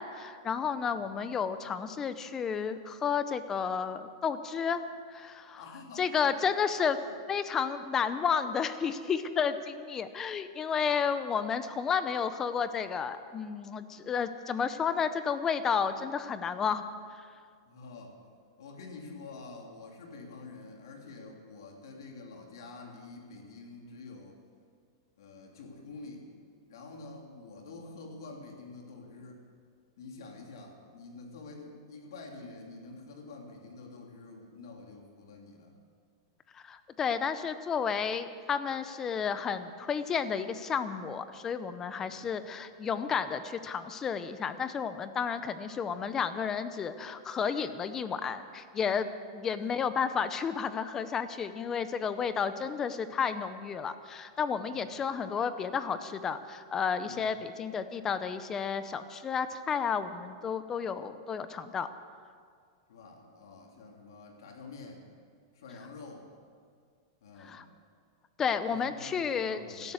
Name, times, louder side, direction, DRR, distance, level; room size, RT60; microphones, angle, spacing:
voice 1, 0.0-4.8 5.1-5.6 6.0-7.0 7.3-16.9 36.5-61.9 67.4-67.6 68.4-69.9, left 6 dB, 20° left, 12 dB, 0.8 m, -32 dB
voice 2, 5.5-6.5 6.9-7.1 17.7-18.2 18.6-24.4 25.2-26.3 26.7-29.5 30.0-35.8 42.0-42.3 54.7-54.8 57.0-57.3 62.9-65.1 65.5-66.3 67.2-67.7 68.7-69.9, left 3 dB, 75° left, 1 dB, 3.1 m, -47 dB
17.0 x 12.5 x 6.5 m, 2.1 s
supercardioid pair, 150°, 2 cm